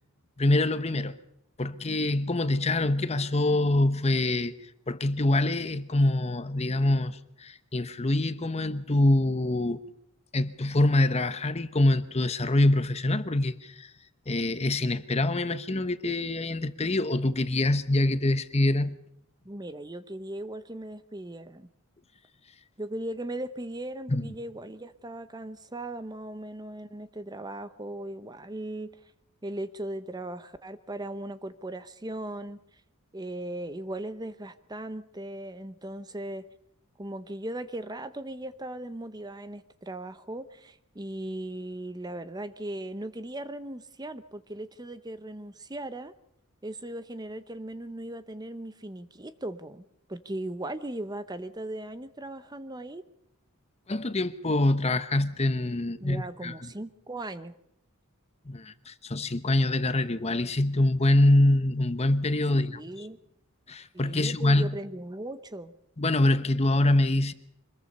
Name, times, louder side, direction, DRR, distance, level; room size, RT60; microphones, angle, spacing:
voice 1, 0.4-1.2 1.6-4.5 4.9-9.8 10.3-13.9 14.3-19.0 24.1-24.3 53.9-56.7 58.5-62.8 63.7-64.8 66.0-67.3, left 1 dB, 30° left, 1.0 m, -25 dB
voice 2, 19.4-21.7 22.8-28.9 29.4-32.6 33.1-36.4 37.0-46.1 46.6-49.8 50.1-53.0 56.0-57.6 62.5-63.2 63.9-65.7, right 1 dB, 20° right, 0.9 m, -38 dB
25.5 x 21.5 x 5.5 m
head